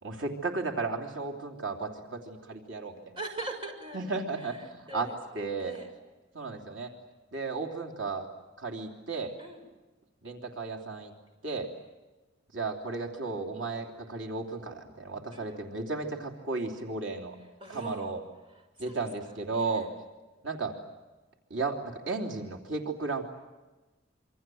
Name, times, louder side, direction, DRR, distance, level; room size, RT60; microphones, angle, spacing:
voice 1, 0.0-3.0 3.9-5.8 6.3-6.9 7.3-8.3 8.6-9.3 10.2-11.1 11.4-11.7 12.5-17.4 17.7-18.2 18.8-19.9 20.4-20.7 21.5-23.2, right 3 dB, 85° right, 2 dB, 3.2 m, -34 dB
voice 2, 3.2-4.1 4.4-5.2 5.6-5.9 9.4-9.6 15.3-15.6 17.6-18.2 18.5-19.0 19.5-19.9, right 2 dB, 30° right, 3 dB, 6.4 m, -42 dB
27.5 x 25.5 x 7.8 m, 1.1 s
head